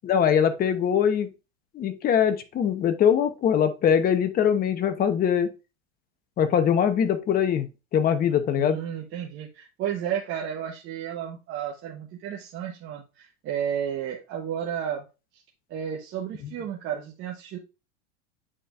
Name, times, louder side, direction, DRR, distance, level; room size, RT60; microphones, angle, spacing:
voice 1, 0.0-1.3 1.7-5.5 6.4-7.7 7.9-8.8, left 8 dB, 25° left, 9 dB, 0.9 m, -22 dB
voice 2, 8.6-15.1 15.7-17.6, right 9 dB, 35° right, -1 dB, 1.1 m, -32 dB
9.0 x 4.4 x 2.5 m, 0.29 s
supercardioid pair, 130°, 33 cm